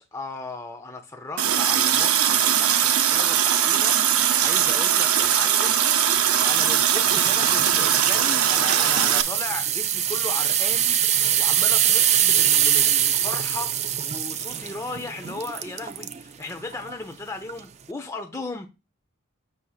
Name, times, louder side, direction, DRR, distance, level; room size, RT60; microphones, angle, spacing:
voice 1, 0.0-6.2 6.4-18.7, left 2 dB, 15° left, 0.6 m, -36 dB
Water tap faucet, 1.4-9.2, right 9 dB, 80° right, 0.6 m, -20 dB
sound 1, 6.3-16.2 16.7-16.9 17.5-17.6, right 10 dB, 30° right, 0.3 m, -24 dB
7.1 x 6.2 x 2.4 m
head